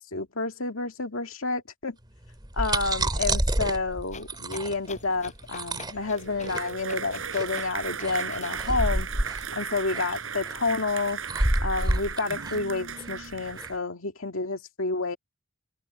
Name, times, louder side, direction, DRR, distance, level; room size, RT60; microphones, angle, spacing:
voice 1, 0.1-2.0 2.5-9.1 9.6-11.2 11.6-15.2, left 3 dB, 75° left, 2.3 m, -29 dB
sound 1, 2.3-13.7, right 1 dB, 20° right, 2.4 m, -29 dB
sound 2, 4.1-9.7 10.2-11.6, left 4 dB, 35° left, 6.9 m, -47 dB
sound 3, 5.9-13.8, right 6 dB, 70° right, 5.2 m, -36 dB
head